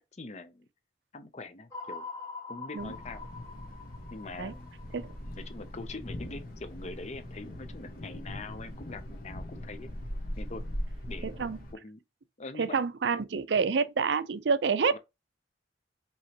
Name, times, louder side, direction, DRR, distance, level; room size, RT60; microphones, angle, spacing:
voice 1, 0.1-0.7 1.1-2.1 2.5-3.3 4.1-4.7 5.4-9.9 10.4-10.6 11.1-11.5 11.7-12.0 12.4-12.7, left 3 dB, 40° left, 0.6 m, -43 dB
sound 1, 1.7-6.0, left 4 dB, 20° left, 1.4 m, -44 dB
Thunder, 2.8-11.7, left 1 dB, 55° left, 1.3 m, -40 dB
voice 2, 11.2-11.6 12.6-15.0, right 5 dB, 75° right, 0.5 m, -28 dB
5.3 x 3.0 x 2.9 m
head